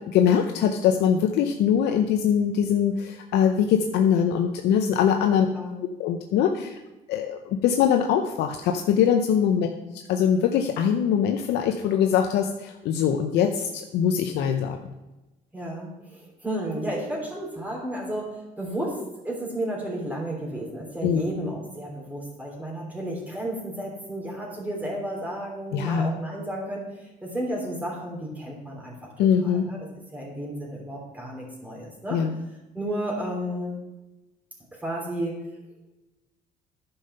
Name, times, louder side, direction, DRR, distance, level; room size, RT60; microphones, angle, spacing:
voice 1, 0.0-5.5 6.0-6.8 7.1-9.7 10.1-14.8 21.0-21.3 25.7-26.1 29.2-29.7 32.1-32.4, left 8 dB, 80° left, 4 dB, 0.7 m, -22 dB
voice 2, 5.4-5.8 9.5-9.7 15.5-29.1 29.4-32.2 32.7-33.8 34.7-35.4, right 1 dB, 10° right, -3 dB, 3.2 m, -32 dB
10.0 x 5.7 x 5.5 m, 1.0 s
cardioid pair, 110°, 17 cm